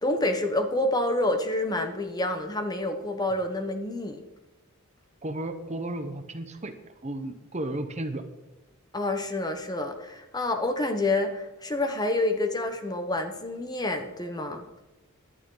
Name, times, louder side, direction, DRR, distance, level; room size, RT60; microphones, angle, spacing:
voice 1, 0.0-4.2 8.9-14.7, left 2 dB, 20° left, 6 dB, 1.1 m, -28 dB
voice 2, 5.2-6.7 7.0-8.2, right 1 dB, 35° right, 8 dB, 0.9 m, -33 dB
17.5 x 11.5 x 3.9 m, 1.1 s
head